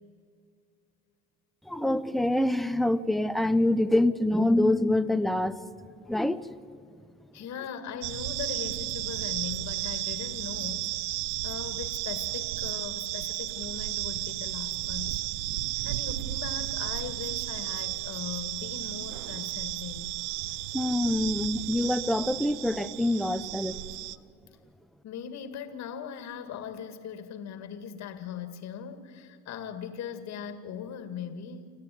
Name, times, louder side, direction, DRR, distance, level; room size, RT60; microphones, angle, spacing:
voice 1, 1.7-5.6 6.1-6.5 20.7-23.8, left 1 dB, ahead, 12 dB, 0.8 m, -25 dB
voice 2, 7.3-10.9 11.4-15.2 15.8-20.2 25.0-31.7, left 8 dB, 50° left, 9 dB, 2.1 m, -39 dB
sound 1, 8.0-24.2, right 16 dB, 75° right, 0.7 m, -33 dB
27.5 x 13.5 x 9.3 m, 2.4 s
supercardioid pair, 95°, 36 cm